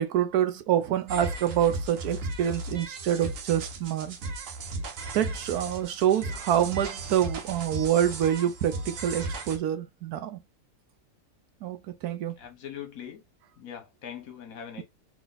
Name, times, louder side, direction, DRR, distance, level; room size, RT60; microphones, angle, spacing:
voice 1, 0.0-4.2 5.1-10.4 11.6-12.3, right 10 dB, 85° right, 1.2 m, -26 dB
sound 1, 1.1-9.6, right 2 dB, 65° right, 1.1 m, -36 dB
voice 2, 12.4-13.2 13.6-14.8, left 8 dB, 70° left, 1.4 m, -41 dB
3.6 x 2.8 x 3.9 m
omnidirectional pair, 1.6 m